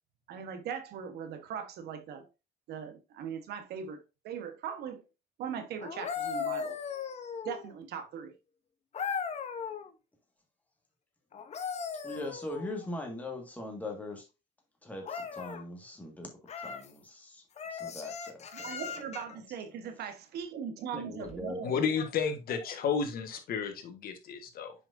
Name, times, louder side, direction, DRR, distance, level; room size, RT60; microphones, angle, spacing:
voice 1, 0.3-2.3 2.7-5.0 5.4-6.8 7.4-8.3 18.5-21.8, right 7 dB, 70° right, 1.3 m, -40 dB
sound 1, 5.8-7.8 8.9-9.9 11.3-12.9 15.0-15.6 16.5-16.9 17.6-19.4 21.2-21.4, left 6 dB, 40° left, 0.9 m, -38 dB
voice 2, 12.0-14.2 14.8-16.3 16.6-17.4 17.8-18.8 20.9-21.6, left 1 dB, 10° left, 1.8 m, -41 dB
voice 3, 21.6-24.7, left 6 dB, 60° left, 1.5 m, -32 dB
7.3 x 5.2 x 2.6 m
cardioid pair, 110°, 17 cm